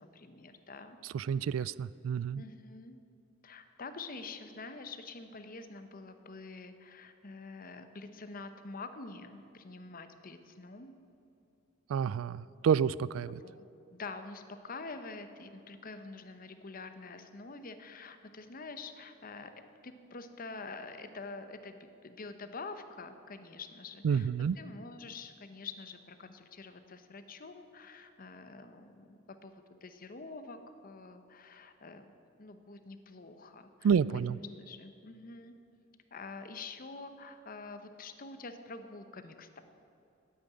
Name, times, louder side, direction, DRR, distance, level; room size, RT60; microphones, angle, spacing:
voice 1, 0.0-1.0 1.5-1.7 2.3-3.0 3.4-10.9 13.4-13.6 13.9-19.5 19.8-24.3 24.6-32.1 32.4-34.3 34.6-35.5 36.1-39.6, left 3 dB, 45° left, 9 dB, 0.8 m, -46 dB
voice 2, 1.1-2.4 11.9-13.4 24.0-24.6 33.8-34.4, right 7 dB, 90° right, 19 dB, 0.3 m, -29 dB
9.4 x 8.6 x 9.7 m, 2.6 s
head